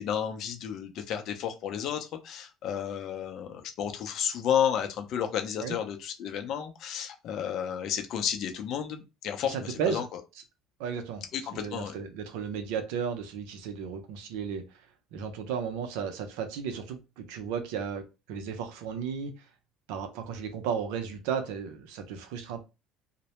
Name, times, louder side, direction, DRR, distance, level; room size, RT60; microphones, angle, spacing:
voice 1, 0.0-10.0 11.3-11.9, left 9 dB, 60° left, 0.5 m, -32 dB
voice 2, 9.4-10.1 10.8-14.9 15.1-19.3 19.9-22.6, right 7 dB, 80° right, 0.5 m, -34 dB
2.1 x 2.0 x 2.9 m
supercardioid pair, 95°, 0 cm